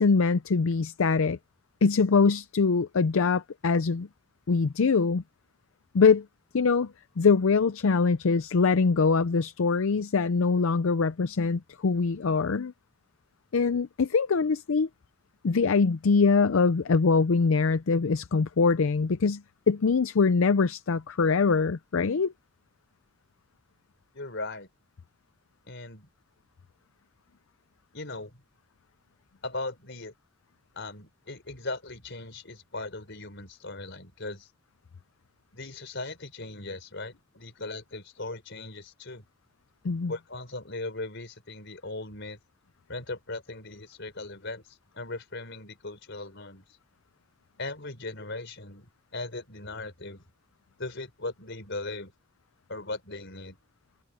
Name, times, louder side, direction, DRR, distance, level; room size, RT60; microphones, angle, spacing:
voice 1, 0.0-1.4 1.8-4.1 4.5-5.2 5.9-6.2 6.5-12.7 13.5-14.9 15.4-22.3 39.8-40.1, left 4 dB, 70° left, 0.5 m, -23 dB
voice 2, 24.1-24.7 25.7-26.1 27.9-28.4 29.4-30.1 30.7-34.5 35.5-39.2 40.1-42.4 42.9-46.6 47.6-50.2 50.8-52.1 52.7-53.6, left 2 dB, 55° left, 4.6 m, -38 dB
head